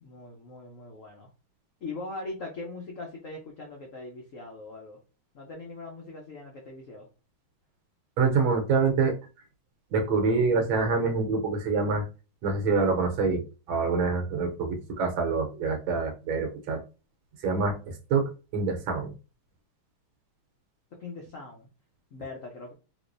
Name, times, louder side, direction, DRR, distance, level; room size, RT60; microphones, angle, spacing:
voice 1, 0.0-1.3 1.8-5.0 5.3-7.1 21.0-21.7 22.1-22.7, left 3 dB, 85° left, 0 dB, 0.7 m, -41 dB
voice 2, 8.2-9.1 9.9-12.0 12.4-16.8 17.4-19.1, right 4 dB, 75° right, 4 dB, 1.4 m, -26 dB
3.5 x 3.0 x 2.5 m, 0.32 s
omnidirectional pair, 2.3 m